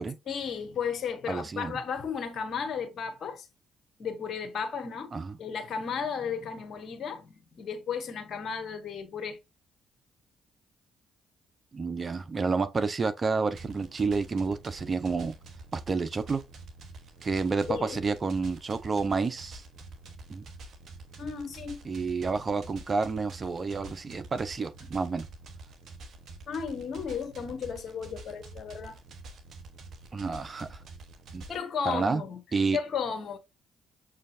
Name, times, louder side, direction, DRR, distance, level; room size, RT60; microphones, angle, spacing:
voice 1, 0.3-3.5 4.0-5.1 5.4-9.4 17.7-18.1 21.2-21.8 26.5-29.0 31.5-32.4 32.7-33.4, left 6 dB, 55° left, 0.9 m, -34 dB
voice 2, 1.3-1.8 5.1-5.4 11.7-15.4 15.7-16.4 17.2-19.6 20.3-20.5 21.8-25.3 30.1-30.8 31.3-31.5 31.9-32.2 32.5-32.8, right 4 dB, 40° right, 0.6 m, -29 dB
sound 1, 13.5-31.6, right 3 dB, 60° right, 0.9 m, -47 dB
6.2 x 2.7 x 2.6 m
hypercardioid pair, 50°, 0 cm